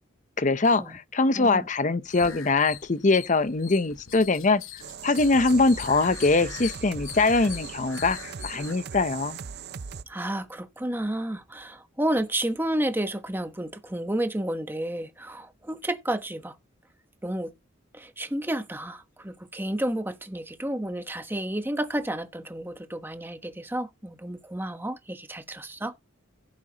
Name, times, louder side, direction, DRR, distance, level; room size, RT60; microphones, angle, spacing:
voice 1, 0.4-4.6 5.0-9.4, left 3 dB, 40° left, 0.7 m, -23 dB
voice 2, 1.3-1.7 10.1-16.6 17.2-17.5 17.9-25.9, right 1 dB, 10° right, 1.1 m, -31 dB
sound 1, 2.0-8.7, left 10 dB, 85° left, 0.9 m, -42 dB
sound 2, 4.8-10.0, right 6 dB, 55° right, 0.5 m, -39 dB
16.0 x 8.1 x 2.9 m
head